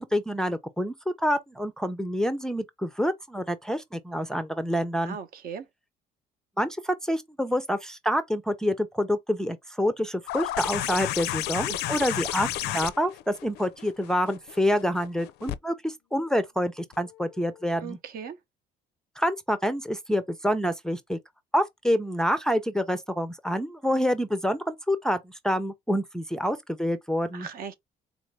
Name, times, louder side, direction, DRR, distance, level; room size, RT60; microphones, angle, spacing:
voice 1, 0.0-5.2 6.6-18.0 19.2-21.2 21.5-27.5, equal, 5° left, 0.4 m, -27 dB
voice 2, 5.0-5.6 11.7-12.0 17.8-18.4 27.3-27.7, right 7 dB, 60° right, 0.8 m, -38 dB
sound 1, 10.3-15.6 16.9-17.0, left 15 dB, 80° left, 0.4 m, -32 dB
3.8 x 2.5 x 3.1 m
cardioid pair, 110°, 17 cm